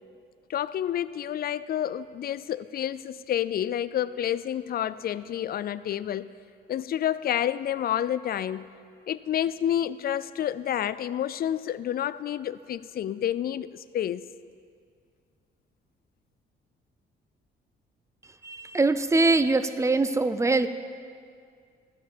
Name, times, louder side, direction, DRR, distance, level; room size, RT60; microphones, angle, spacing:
voice 1, 0.5-6.3 6.7-8.7 9.1-14.3, left 10 dB, 50° left, 17 dB, 0.4 m, -29 dB
voice 2, 18.4-20.7, right 3 dB, 15° right, 12 dB, 0.5 m, -23 dB
15.0 x 5.7 x 6.7 m, 2.2 s
cardioid pair, 90°, 20 cm